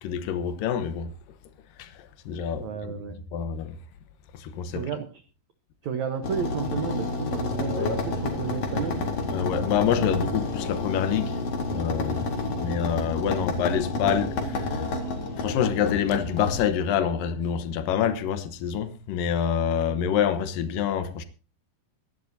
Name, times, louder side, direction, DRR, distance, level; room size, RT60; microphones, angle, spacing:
voice 1, 0.0-1.1 1.8-3.0 3.3-3.8 4.3-4.9 9.3-11.4 11.7-12.3 12.6-15.0 15.4-21.2, left 8 dB, 70° left, 2.3 m, -27 dB
voice 2, 2.6-3.2 4.7-5.1 5.8-9.0, right 7 dB, 85° right, 1.6 m, -32 dB
sound 1, 6.2-16.5, left 2 dB, 45° left, 2.7 m, -29 dB
24.0 x 11.0 x 2.7 m
omnidirectional pair, 5.0 m